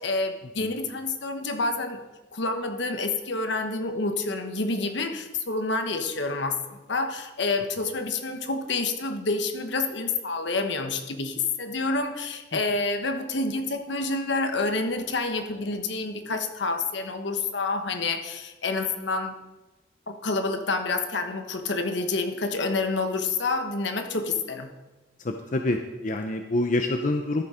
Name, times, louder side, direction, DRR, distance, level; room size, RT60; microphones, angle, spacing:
voice 1, 0.0-2.0 2.3-19.4 20.1-24.7, left 3 dB, 70° left, 6 dB, 1.2 m, -28 dB
voice 2, 25.2-27.4, left 2 dB, 45° left, 5 dB, 0.6 m, -27 dB
13.5 x 6.9 x 5.0 m, 1.1 s
head